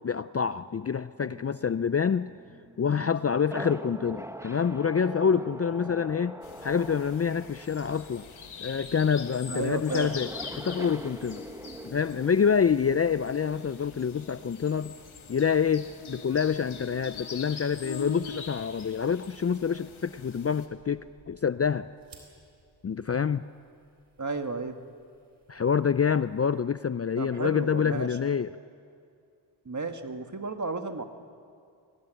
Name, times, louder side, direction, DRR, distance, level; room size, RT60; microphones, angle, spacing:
voice 1, 0.0-2.3 2.8-8.3 8.6-10.3 10.6-11.4 11.8-14.9 15.3-21.9 22.8-23.4 25.5-28.5, left 7 dB, 30° left, 14 dB, 0.5 m, -27 dB
sound 1, 1.2-17.0 17.5-18.2, right 1 dB, 5° right, 1.3 m, -45 dB
sound 2, 6.4-20.7, left 5 dB, 85° left, 2.0 m, -43 dB
voice 2, 9.5-10.1 24.2-24.8 27.2-28.2 29.6-31.0, right 3 dB, 35° right, 6 dB, 1.8 m, -33 dB
sound 3, 19.3-26.6, right 4 dB, 80° right, 3.9 m, -61 dB
22.0 x 18.0 x 9.1 m, 2.4 s
cardioid pair, 55°, 47 cm